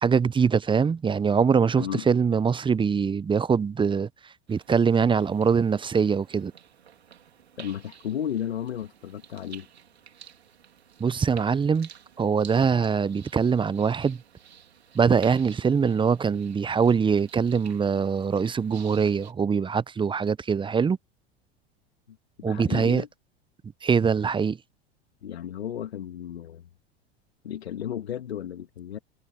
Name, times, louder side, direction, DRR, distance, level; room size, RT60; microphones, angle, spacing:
voice 1, 0.0-4.1 4.5-6.5 11.0-11.9 12.2-14.2 14.9-21.0 22.4-23.0 23.8-24.6, right 6 dB, 15° right, 0.7 m, -23 dB
sound 1, 4.5-19.3, right 8 dB, 85° right, 3.2 m, -52 dB
voice 2, 7.6-9.7 22.1-22.2 22.4-23.1 25.2-26.7 27.4-29.0, left 10 dB, 80° left, 2.7 m, -33 dB
hypercardioid pair, 85°, 31 cm